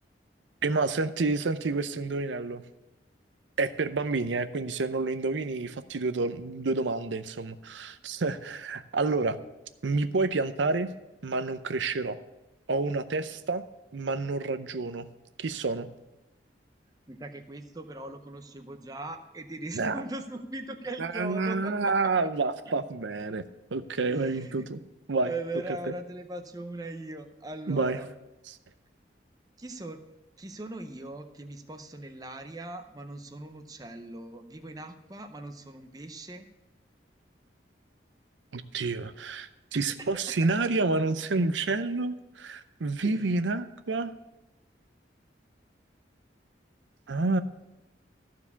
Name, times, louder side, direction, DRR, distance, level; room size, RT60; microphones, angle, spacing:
voice 1, 0.6-2.6 3.6-9.4 9.8-10.9 11.2-12.2 12.7-13.6 13.9-15.0 15.4-15.9 19.7-20.0 21.0-23.4 23.7-24.8 25.1-25.3 27.7-28.0 28.5-28.6 38.5-44.1 47.1-47.4, right 3 dB, 90° right, 12 dB, 0.6 m, -29 dB
voice 2, 17.1-22.1 22.7-22.8 24.1-24.6 25.2-28.1 29.6-30.0 30.4-36.5 39.7-40.6 43.0-43.4, right 2 dB, 20° right, 7 dB, 0.6 m, -40 dB
14.0 x 4.8 x 6.9 m, 0.97 s
head